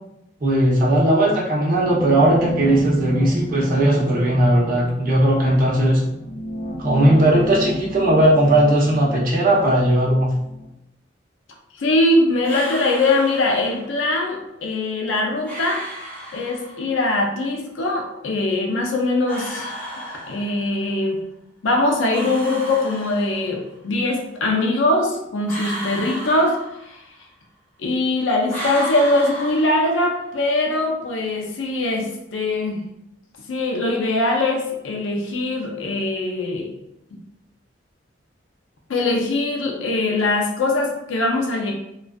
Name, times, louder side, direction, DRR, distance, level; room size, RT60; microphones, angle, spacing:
voice 1, 0.4-6.0 6.8-10.3, right 1 dB, 45° right, -4 dB, 0.7 m, -17 dB
sound 1, 1.7-10.7, left 1 dB, 40° left, 0.6 m, -31 dB
voice 2, 11.8-15.8 16.3-19.7 20.3-21.2 21.6-26.6 26.9-27.0 27.8-32.8 33.5-36.7 38.9-41.7, left 2 dB, 85° left, 1 dB, 0.5 m, -21 dB
sound 2, 12.4-13.9 15.4-16.9 19.3-20.8 22.1-23.7 25.5-27.2 28.5-30.3, equal, 10° left, 0.7 m, -34 dB
2.4 x 2.3 x 2.2 m, 0.84 s
head